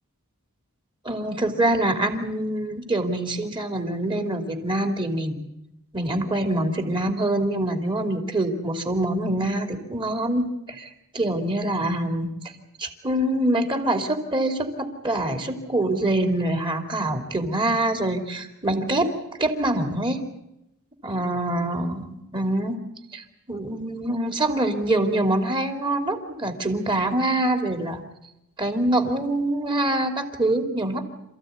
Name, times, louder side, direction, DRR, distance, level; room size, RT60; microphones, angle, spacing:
voice 1, 1.0-5.5 5.9-10.9 11.1-12.3 12.8-19.1 19.4-20.2 21.0-22.8 23.1-28.0 28.6-31.0, right 1 dB, 20° right, 5 dB, 3.1 m, -25 dB
28.0 x 15.0 x 9.5 m, 0.85 s
head